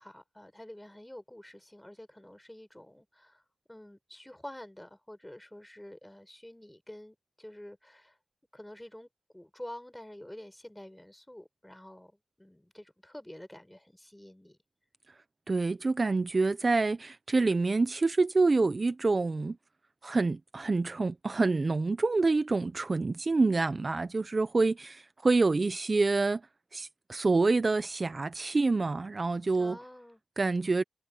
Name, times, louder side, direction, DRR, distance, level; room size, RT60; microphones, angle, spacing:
voice 1, 0.0-3.4 3.7-8.2 8.5-9.1 9.3-14.6 29.5-30.2, left 1 dB, 10° left, 6.2 m, -48 dB
voice 2, 15.5-19.6 20.0-26.4 26.7-29.8 30.4-30.8, right 3 dB, 40° right, 0.6 m, -27 dB
wide cardioid pair, 90°, 0 cm